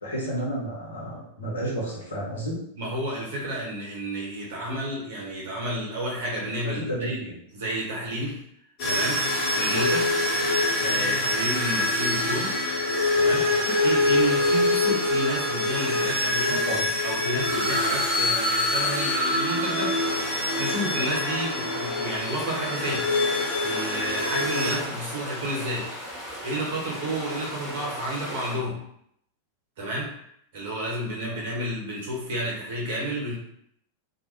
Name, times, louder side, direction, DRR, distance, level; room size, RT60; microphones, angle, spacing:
voice 1, 0.0-2.6 6.7-7.3 16.5-16.9 31.3-31.4, right 1 dB, 70° left, -5 dB, 1.0 m, -31 dB
voice 2, 2.8-7.2 7.5-8.4 8.8-9.3 9.5-10.1 10.8-12.5 13.2-16.6 17.0-20.0 20.6-23.1 23.6-25.9 26.4-28.8 29.8-30.1 30.5-33.4, right 1 dB, 55° right, -3 dB, 1.0 m, -31 dB
sound 1, 8.8-24.8, left 2 dB, 40° left, 1.0 m, -25 dB
sound 2, 20.0-28.5, equal, ahead, 1.0 m, -37 dB
2.4 x 2.1 x 3.1 m, 0.71 s
figure-of-eight pair, 90°, 0 cm